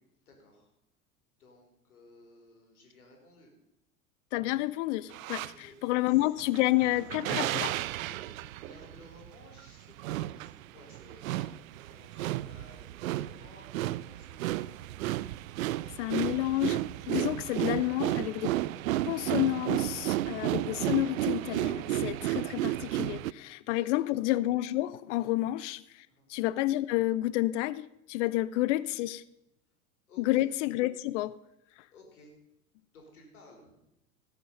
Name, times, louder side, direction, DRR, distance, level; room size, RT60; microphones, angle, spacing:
voice 1, 0.2-0.7 1.3-3.5 5.4-5.7 6.1-6.2 8.1-9.9 10.3-14.9 23.8-24.1 25.4-25.5 26.1-26.3 28.3-28.4 30.1-30.4 31.9-32.4 32.9-33.8, left 2 dB, 80° left, 1 dB, 4.0 m, -56 dB
voice 2, 4.3-7.7 16.0-18.5 19.1-29.2 30.2-31.4, left 16 dB, 55° left, 18 dB, 0.6 m, -30 dB
sound 1, 5.1-5.5 6.4-23.3, right 15 dB, 70° right, 0.5 m, -33 dB
18.5 x 6.9 x 5.4 m, 0.85 s
hypercardioid pair, 80°, 43 cm